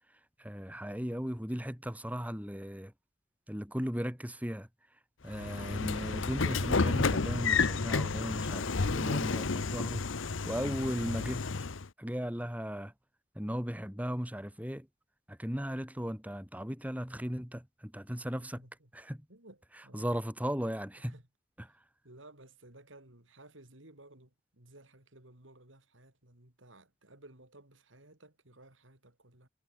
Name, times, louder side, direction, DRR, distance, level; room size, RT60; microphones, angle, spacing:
voice 1, 0.4-2.9 3.5-4.7 5.2-10.0 10.4-11.5 12.0-12.9 13.3-14.9 15.3-18.6 18.9-19.3 19.9-21.1 21.6-21.8, equal, 10° right, 2.9 m, -36 dB
Train / Sliding door, 5.3-11.9, left 4 dB, 85° left, 0.9 m, -31 dB
voice 2, 18.1-18.9 19.3-20.2 21.0-21.2 22.0-29.5, right 2 dB, 80° right, 4.9 m, -57 dB
head